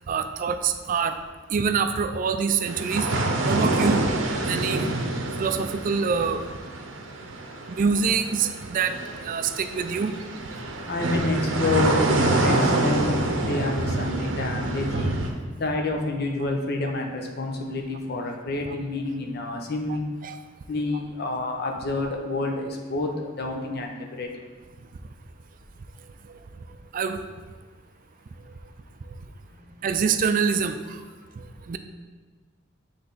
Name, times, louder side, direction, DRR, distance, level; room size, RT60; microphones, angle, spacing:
voice 1, 0.1-1.2 1.5-3.1 3.5-4.1 4.5-4.9 5.4-6.4 7.8-9.0 9.2-10.1 18.7-18.8 20.2-20.4 26.3-26.4 26.9-27.2 29.8-31.0 31.4-31.8, right 6 dB, 45° right, 8 dB, 0.4 m, -25 dB
sound 1, 2.6-15.3, right 2 dB, 85° right, 0.7 m, -26 dB
voice 2, 10.9-15.1 15.6-20.2 20.7-24.3 29.6-29.7, left 2 dB, 55° left, 2 dB, 0.8 m, -28 dB
7.6 x 3.4 x 3.9 m, 1.4 s
head